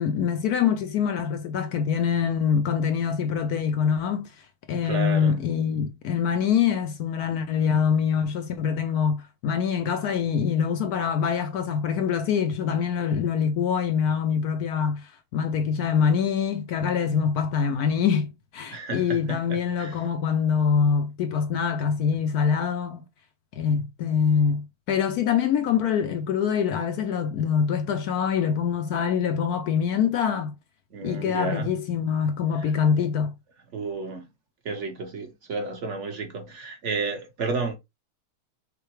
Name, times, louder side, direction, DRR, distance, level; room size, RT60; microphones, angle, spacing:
voice 1, 0.0-4.3 4.7-23.0 23.5-30.5 31.0-33.3, left 7 dB, 75° left, 0.8 m, -24 dB
voice 2, 4.7-5.4 18.7-20.0 30.9-31.7 32.5-32.7 33.7-34.2 34.6-37.7, right 4 dB, 50° right, 1.0 m, -32 dB
6.5 x 2.2 x 3.1 m
omnidirectional pair, 2.2 m